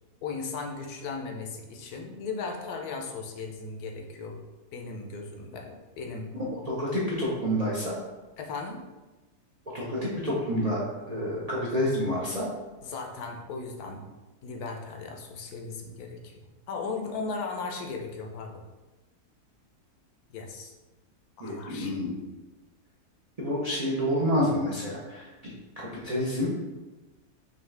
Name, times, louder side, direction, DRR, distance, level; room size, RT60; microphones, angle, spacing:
voice 1, 0.2-4.4 4.7-6.3 8.4-8.8 12.8-14.1 14.4-18.6 20.3-20.7 21.4-22.0, left 4 dB, 70° left, 2 dB, 1.1 m, -37 dB
voice 2, 6.3-8.0 9.7-12.5 21.4-22.2 23.4-26.5, equal, 50° right, -6 dB, 0.4 m, -29 dB
5.6 x 2.4 x 3.3 m, 1.1 s
omnidirectional pair, 1.7 m